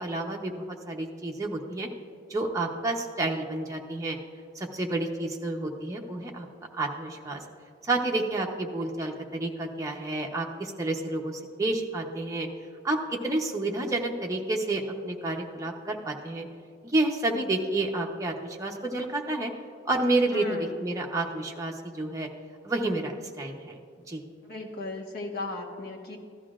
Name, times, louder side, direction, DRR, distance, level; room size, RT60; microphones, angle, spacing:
voice 1, 0.0-1.9 2.3-4.2 4.5-6.5 6.8-7.4 7.9-12.5 12.8-13.0 13.2-16.5 16.8-19.5 19.8-22.3 22.6-23.8 24.1-24.2, right 2 dB, 15° right, 0 dB, 0.8 m, -30 dB
voice 2, 20.3-20.8 24.4-26.2, left 2 dB, 55° left, 0 dB, 1.3 m, -36 dB
15.0 x 12.0 x 2.4 m, 2.2 s
head